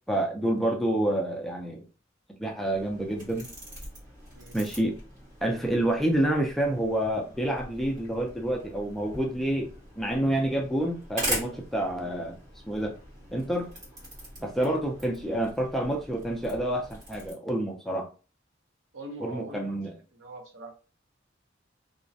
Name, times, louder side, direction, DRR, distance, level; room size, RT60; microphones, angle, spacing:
voice 1, 0.1-1.8 2.4-3.5 4.5-5.0 5.4-9.7 10.0-12.4 12.7-12.9 13.3-13.7 14.4-18.1 19.2-19.9, right 1 dB, ahead, 0 dB, 0.4 m, -28 dB
sound 1, 2.7-17.3, equal, 45° right, 1.3 m, -41 dB
voice 2, 18.9-20.7, right 1 dB, 90° right, 3 dB, 0.6 m, -43 dB
2.4 x 2.0 x 2.6 m, 0.35 s
head